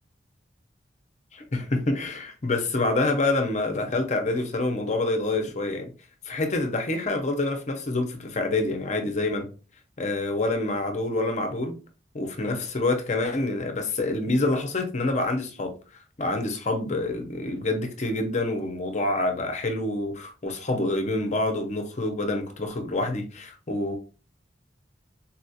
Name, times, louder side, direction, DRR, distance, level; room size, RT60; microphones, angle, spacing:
voice 1, 1.3-5.9 6.2-9.5 10.0-11.8 12.1-15.8 16.2-24.0, left 2 dB, 40° left, 0.7 m, -27 dB
4.1 x 2.4 x 2.7 m
head